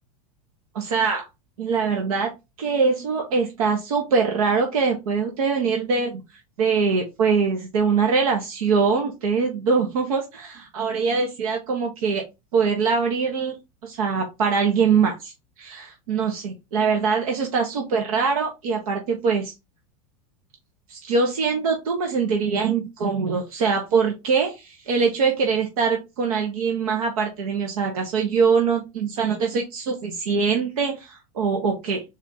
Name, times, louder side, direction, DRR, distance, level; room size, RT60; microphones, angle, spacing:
voice 1, 0.7-1.3 1.6-2.3 2.6-6.2 6.6-12.2 12.5-13.5 13.8-15.3 15.6-19.5 20.9-32.0, right 5 dB, 85° right, 2 dB, 1.0 m, -23 dB
4.1 x 2.5 x 3.9 m, 0.24 s
supercardioid pair, 125°, 18 cm